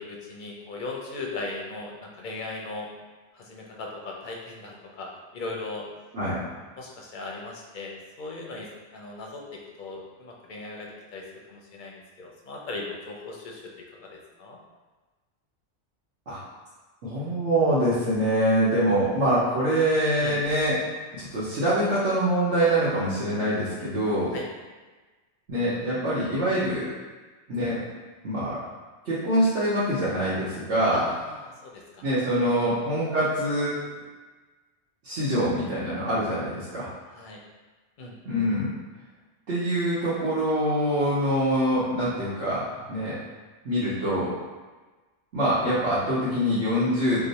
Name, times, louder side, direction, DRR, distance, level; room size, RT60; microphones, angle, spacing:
voice 1, 0.0-2.9 3.3-5.9 6.7-11.2 11.5-13.7 14.4-14.6 20.2-20.4 24.3-24.5 30.9-32.0 32.4-32.8 37.1-37.4 38.0-38.1, left 3 dB, 60° left, -1 dB, 0.6 m, -38 dB
voice 2, 17.0-20.8 21.2-24.3 25.5-26.9 27.5-27.8 28.2-28.6 29.0-31.0 32.0-33.8 35.0-36.9 38.2-38.7 39.5-42.6 42.9-43.1 43.6-44.3 45.3-47.2, right 1 dB, 90° right, -11 dB, 1.1 m, -24 dB
3.0 x 2.0 x 3.9 m, 1.3 s
omnidirectional pair, 1.2 m